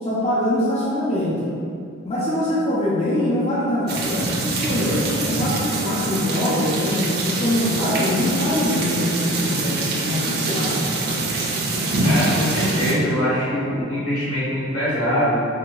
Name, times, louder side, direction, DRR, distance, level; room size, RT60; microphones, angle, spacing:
voice 1, 0.0-1.5 2.1-11.0, left 1 dB, 30° left, -8 dB, 0.4 m, -23 dB
sound 1, 3.9-12.9, right 2 dB, 45° right, 0.3 m, -24 dB
voice 2, 12.0-15.4, equal, 75° left, -9 dB, 1.0 m, -22 dB
2.7 x 2.2 x 2.9 m, 2.5 s
head